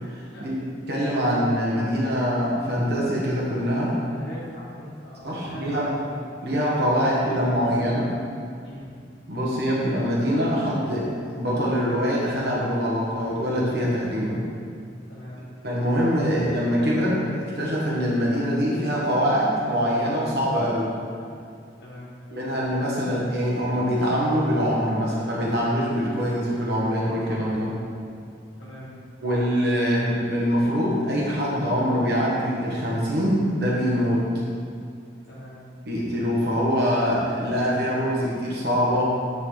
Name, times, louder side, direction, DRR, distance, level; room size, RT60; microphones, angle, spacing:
voice 1, 0.1-0.5 0.9-4.0 5.2-5.9 6.4-8.1 9.3-14.4 15.6-20.9 22.3-27.7 29.2-34.2 35.8-39.1, equal, 55° right, -5 dB, 1.3 m, -24 dB
voice 2, 4.0-6.2 6.9-7.5 7.8-8.0 8.6-9.1 15.1-15.4 21.8-22.4 28.6-28.9 35.2-35.6, left 1 dB, 65° left, -9 dB, 1.4 m, -41 dB
9.6 x 4.0 x 3.9 m, 2.3 s
head